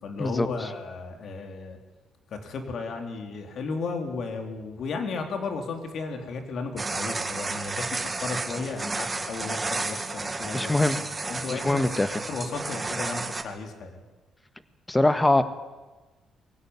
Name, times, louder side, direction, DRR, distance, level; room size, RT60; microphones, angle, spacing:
voice 1, 0.0-1.8 2.3-10.7 11.2-14.0, left 4 dB, 65° left, 5 dB, 3.8 m, -34 dB
sound 1, 6.8-13.4, right 3 dB, 25° right, 2.1 m, -32 dB
voice 2, 10.5-11.0 11.5-12.1 14.9-15.4, left 2 dB, 15° left, 11 dB, 1.6 m, -22 dB
22.5 x 16.0 x 9.8 m, 1.2 s
cardioid pair, 90°, 0 cm